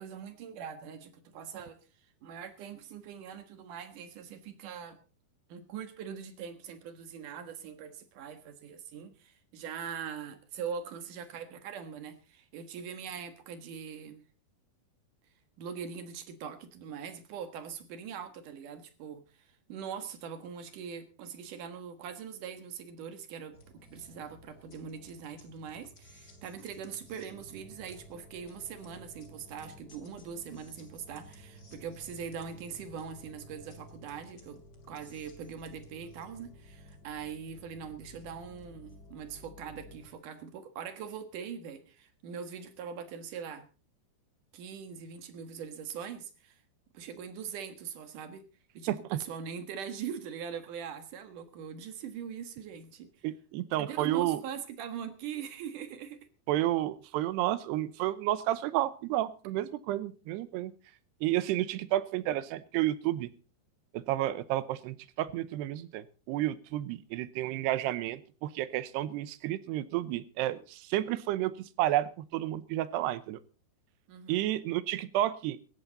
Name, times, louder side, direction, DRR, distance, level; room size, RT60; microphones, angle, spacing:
voice 1, 0.0-1.8 2.2-5.0 5.5-14.2 15.6-43.7 44.5-46.6 46.9-48.4 48.7-53.1 53.8-56.2 74.1-74.5, right 7 dB, 60° right, 10 dB, 2.6 m, -42 dB
sound 1, 23.5-40.1, equal, 30° left, 2.7 m, -53 dB
voice 2, 48.9-49.2 53.2-54.4 56.5-60.7 61.2-63.3 63.9-73.4 74.3-75.6, right 14 dB, 85° right, 16 dB, 2.9 m, -31 dB
17.0 x 14.0 x 4.0 m, 0.35 s
omnidirectional pair, 4.8 m